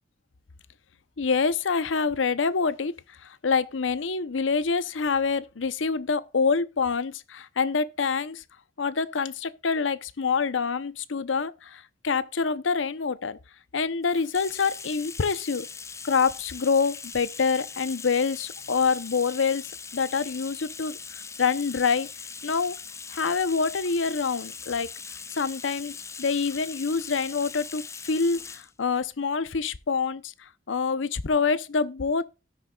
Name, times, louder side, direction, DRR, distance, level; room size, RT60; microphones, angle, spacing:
voice 1, 1.2-8.4 8.8-13.4 13.7-15.7 16.0-22.1 22.4-22.8 23.1-24.9 25.3-32.3, left 5 dB, 85° left, 0.7 m, -26 dB
Bathtub (filling or washing), 14.0-28.7, left 5 dB, 15° left, 0.4 m, -41 dB
17.5 x 6.3 x 2.3 m
head